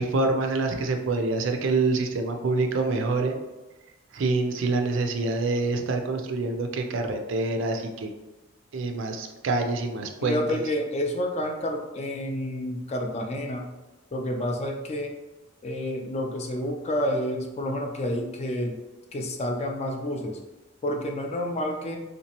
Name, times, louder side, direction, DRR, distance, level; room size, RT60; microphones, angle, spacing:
voice 1, 0.0-3.4 4.1-8.1 8.7-10.6, right 3 dB, 65° right, 5 dB, 0.4 m, -26 dB
voice 2, 10.2-13.7 14.1-15.1 15.6-18.7 19.1-20.3 20.8-22.0, left 1 dB, 30° left, 2 dB, 0.4 m, -29 dB
3.2 x 2.9 x 2.9 m, 1.1 s
head